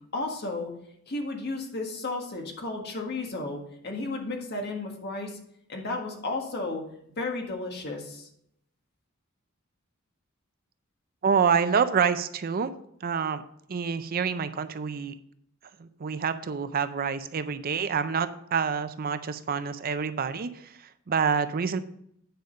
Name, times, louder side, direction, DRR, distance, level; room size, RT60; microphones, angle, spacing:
voice 1, 0.1-0.7 1.1-5.4 5.7-6.8 7.2-8.3, left 2 dB, 50° left, 2 dB, 1.7 m, -33 dB
voice 2, 11.2-12.7 13.0-13.4 13.7-15.2 15.8-21.8, right 6 dB, 45° right, 12 dB, 0.5 m, -27 dB
9.2 x 5.1 x 5.3 m, 0.72 s
head